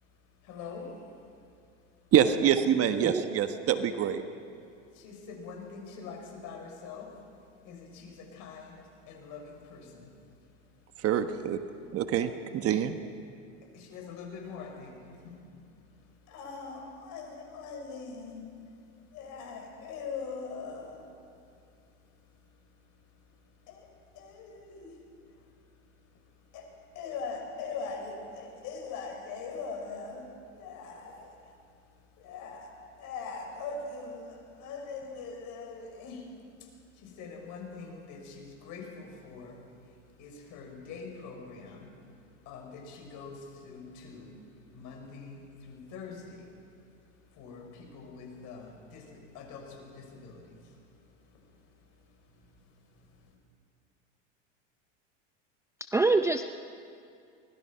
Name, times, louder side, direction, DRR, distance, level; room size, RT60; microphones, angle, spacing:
voice 1, 0.1-1.5 4.9-11.1 12.2-12.4 13.6-53.3, left 4 dB, 55° left, 1 dB, 6.4 m, -44 dB
voice 2, 2.1-4.2 11.0-11.6 11.9-13.0, right 9 dB, 40° right, 9 dB, 1.2 m, -26 dB
voice 3, 3.0-3.3 55.9-56.4, right 3 dB, 10° right, 8 dB, 0.5 m, -25 dB
24.0 x 20.0 x 5.7 m, 2.4 s
hypercardioid pair, 100°, 37 cm